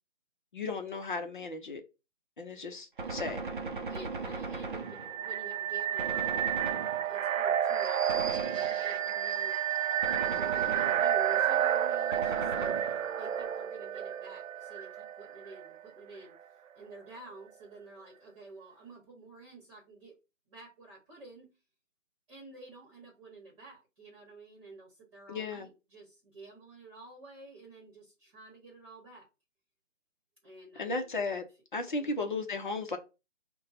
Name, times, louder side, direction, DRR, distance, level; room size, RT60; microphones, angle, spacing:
voice 1, 0.5-1.8 2.4-3.4 10.7-10.9 25.3-25.7 30.8-31.4 31.7-33.0, left 3 dB, 40° left, 0.7 m, -35 dB
Gunshot gunfire, 3.0-5.5 6.0-7.4 8.1-9.1 10.0-11.4 12.1-13.3, right 4 dB, 40° right, 0.6 m, -39 dB
voice 2, 3.9-9.7 10.1-16.3 16.7-20.1 20.5-21.5 22.3-29.3 30.4-31.2 31.9-32.2, right 3 dB, 25° right, 1.2 m, -50 dB
sound 1, 4.9-15.7, right 10 dB, 85° right, 0.6 m, -30 dB
5.2 x 2.2 x 4.0 m
hypercardioid pair, 160°, 38 cm